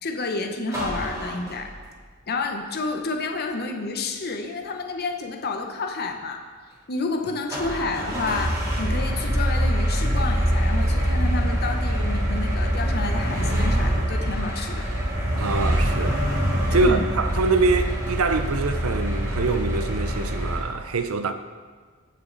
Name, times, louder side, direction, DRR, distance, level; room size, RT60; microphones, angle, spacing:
voice 1, 0.0-1.7 2.3-6.4 6.9-14.9 16.7-17.1, left 3 dB, 50° left, 0.9 m, -30 dB
sound 1, 0.7-2.0 7.5-20.6, equal, 15° right, 2.9 m, -24 dB
voice 2, 15.4-16.2 16.7-21.3, right 3 dB, 75° right, 0.7 m, -24 dB
15.5 x 6.6 x 3.9 m
head